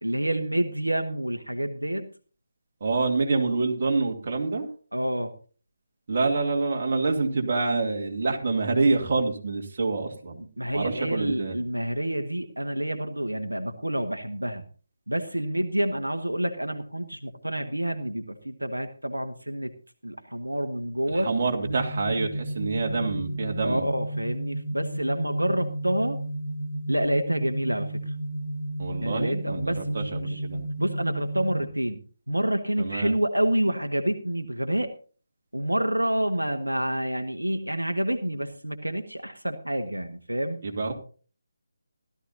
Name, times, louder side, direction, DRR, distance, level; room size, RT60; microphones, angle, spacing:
voice 1, 0.0-2.1 4.9-5.3 10.4-14.6 15.1-19.7 20.0-21.3 23.6-26.2 26.9-28.1 29.0-30.4 30.8-34.9 35.5-40.6, right 1 dB, 90° right, 6 dB, 1.4 m, -28 dB
voice 2, 2.8-4.7 6.1-10.4 10.7-11.6 21.1-23.9 28.8-30.7 32.8-33.1 40.6-40.9, right 3 dB, 45° right, 1 dB, 2.6 m, -27 dB
sound 1, 21.6-31.6, right 1 dB, 20° right, 3.3 m, -33 dB
16.5 x 13.0 x 2.8 m, 0.39 s
figure-of-eight pair, 150°, 0 cm